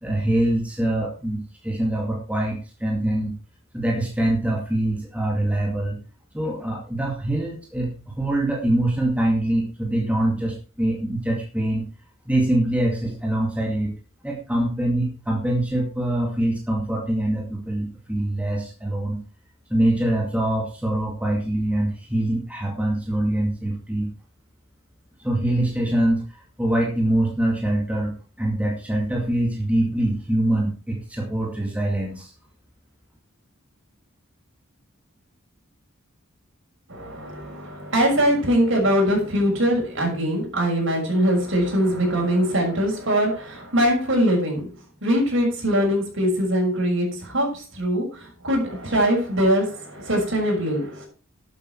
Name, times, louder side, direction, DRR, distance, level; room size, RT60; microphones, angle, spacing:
voice 1, 0.0-3.3 3.7-6.0 6.3-11.8 12.3-13.9 14.2-19.2 19.7-24.1 25.2-26.2 26.6-32.3, right 1 dB, 5° right, -1 dB, 2.3 m, -24 dB
voice 2, 36.9-44.7 45.0-51.1, equal, 65° right, 0 dB, 6.3 m, -22 dB
12.0 x 8.8 x 4.7 m, 0.34 s
head